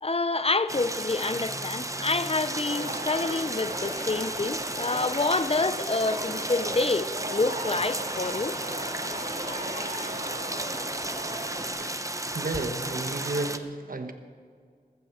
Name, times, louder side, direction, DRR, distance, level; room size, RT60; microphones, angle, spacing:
voice 1, 0.0-8.5 9.5-9.9, left 3 dB, 40° left, 0.5 m, -28 dB
sound 1, 0.7-13.6, right 1 dB, 20° right, 0.8 m, -34 dB
sound 2, 2.6-11.7, right 1 dB, 45° right, 2.2 m, -37 dB
voice 2, 11.8-14.1, right 2 dB, 65° right, 1.1 m, -33 dB
15.0 x 13.5 x 4.5 m
wide cardioid pair, 60°, 16 cm